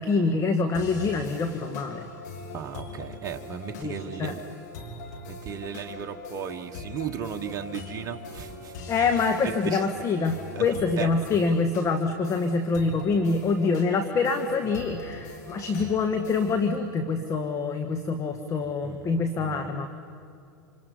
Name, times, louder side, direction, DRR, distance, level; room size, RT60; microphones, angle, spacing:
voice 1, 0.0-2.1 3.8-4.3 8.9-19.9, left 4 dB, 30° left, 6 dB, 1.6 m, -25 dB
sound 1, 0.7-16.7, left 3 dB, 65° left, 3.8 m, -42 dB
voice 2, 2.5-4.4 5.1-8.7 9.4-9.8 10.5-10.6 11.0-11.1 18.8-19.1 19.4-19.7, right 8 dB, 35° right, 3 dB, 1.4 m, -35 dB
27.5 x 27.0 x 5.6 m, 2.5 s
figure-of-eight pair, 90°, 10 cm